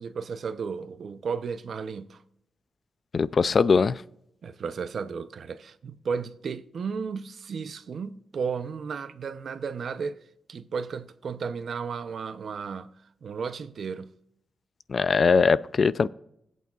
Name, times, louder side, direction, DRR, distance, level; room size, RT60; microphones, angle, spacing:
voice 1, 0.0-2.2 4.4-10.2 10.5-12.9 13.2-14.1, right 5 dB, 65° right, 0.6 m, -34 dB
voice 2, 3.1-4.0 14.9-16.1, left 5 dB, 45° left, 0.4 m, -21 dB
20.0 x 8.4 x 2.4 m
wide cardioid pair, 115°, 0 cm